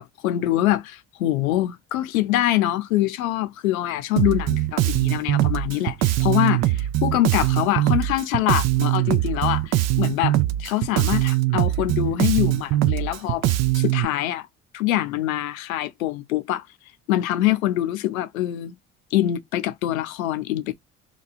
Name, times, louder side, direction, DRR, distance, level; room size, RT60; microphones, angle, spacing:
voice 1, 0.0-13.4 13.7-14.5 14.7-16.6 17.1-18.7 19.1-20.7, left 14 dB, 85° left, 0.5 m, -24 dB
Bass guitar, 4.2-14.0, right 15 dB, 40° right, 0.4 m, -22 dB
2.8 x 2.4 x 2.3 m
hypercardioid pair, 60°, 41 cm